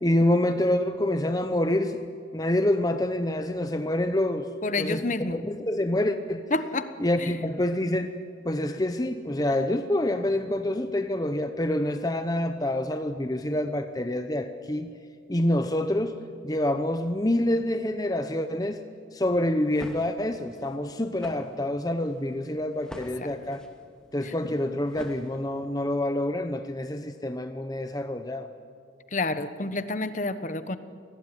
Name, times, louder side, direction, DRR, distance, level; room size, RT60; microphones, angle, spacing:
voice 1, 0.0-2.1 2.3-4.5 4.8-6.5 7.0-8.1 8.4-14.9 15.3-18.8 19.1-23.6 24.1-28.5, left 1 dB, 20° left, 8 dB, 0.8 m, -27 dB
voice 2, 4.6-5.4 6.5-6.9 7.2-7.3 23.2-23.3 24.2-24.5 29.1-30.8, left 2 dB, 40° left, 12 dB, 1.1 m, -29 dB
sound 1, 19.5-25.8, equal, 5° left, 2.0 m, -47 dB
27.5 x 18.5 x 10.0 m, 2.3 s
head